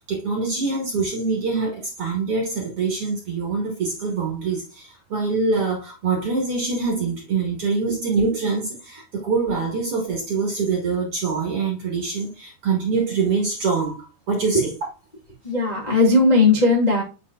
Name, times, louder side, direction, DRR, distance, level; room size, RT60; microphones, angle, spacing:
voice 1, 0.0-14.7, right 4 dB, 45° right, 2.0 m, -24 dB
voice 2, 15.4-17.0, left 2 dB, 20° left, 0.9 m, -17 dB
10.0 x 5.3 x 2.4 m
omnidirectional pair, 4.8 m